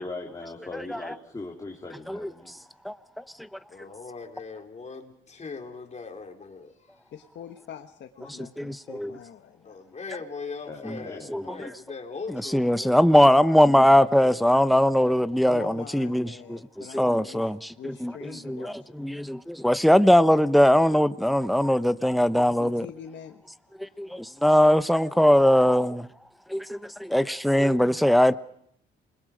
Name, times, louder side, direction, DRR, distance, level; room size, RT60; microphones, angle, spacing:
voice 1, 0.0-2.6 10.7-11.4, left 2 dB, 20° left, 3.6 m, -39 dB
voice 2, 0.7-1.1 2.1-2.3 2.8-2.9 8.6-9.1 10.9-11.0 11.3-11.7 12.3-22.9 24.0-26.1 26.5-28.4, equal, ahead, 0.8 m, -21 dB
voice 3, 3.7-7.0 8.2-8.4 9.7-13.1 27.4-27.9, left 4 dB, 35° left, 3.7 m, -40 dB
voice 4, 7.1-9.8 15.4-17.4 17.8-19.1 22.3-23.4, left 9 dB, 65° left, 1.4 m, -44 dB
28.0 x 21.0 x 5.1 m
cardioid pair, 90°, 20 cm